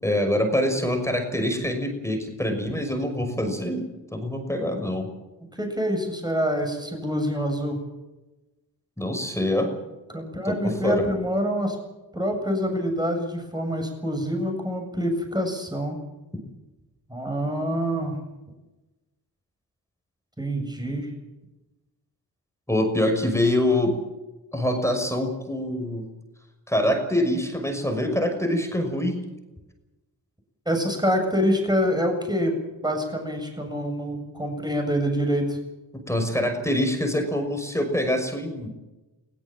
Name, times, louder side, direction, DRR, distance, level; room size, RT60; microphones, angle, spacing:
voice 1, 0.0-3.8 4.1-5.1 9.0-9.7 10.4-11.1 22.7-24.0 24.5-26.1 26.7-29.2 35.9-38.7, left 1 dB, 5° left, 4 dB, 5.9 m, -25 dB
voice 2, 5.6-7.8 10.1-11.8 12.1-16.0 17.1-18.2 20.4-21.1 30.7-35.6, equal, 10° right, 3 dB, 7.4 m, -26 dB
22.0 x 17.5 x 7.6 m, 1.1 s
supercardioid pair, 45°, 45 cm